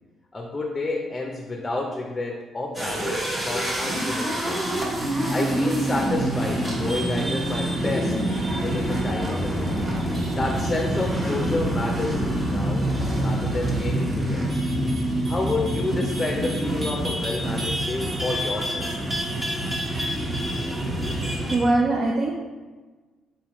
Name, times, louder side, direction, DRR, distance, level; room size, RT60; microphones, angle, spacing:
voice 1, 0.3-4.6 5.3-8.1 8.6-9.8 10.3-12.9 13.1-14.6 15.3-18.9, left 2 dB, 25° left, -1 dB, 0.6 m, -30 dB
sound 1, 2.7-21.7, right 1 dB, 25° right, 1.1 m, -26 dB
voice 2, 20.9-22.3, right 2 dB, 45° right, -1 dB, 0.5 m, -24 dB
4.0 x 3.9 x 3.0 m, 1.3 s
cardioid pair, 90°, 0 cm